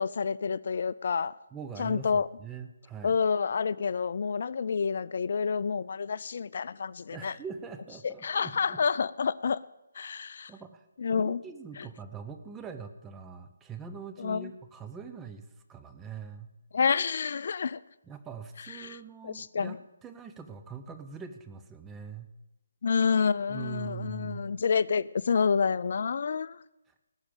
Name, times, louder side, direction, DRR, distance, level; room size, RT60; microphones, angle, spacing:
voice 1, 0.0-1.3 1.8-2.3 3.0-7.3 8.2-9.6 10.0-10.5 11.0-11.4 14.2-14.5 16.7-17.8 18.8-19.0 19.2-19.8 22.8-26.6, left 6 dB, 55° left, 19 dB, 0.4 m, -28 dB
voice 2, 1.5-3.2 7.1-8.8 10.5-10.8 11.1-16.5 18.0-19.8 20.0-22.3 23.5-24.4, right 6 dB, 10° right, 7 dB, 0.8 m, -43 dB
18.5 x 6.4 x 9.0 m, 0.95 s
figure-of-eight pair, 155°, 0 cm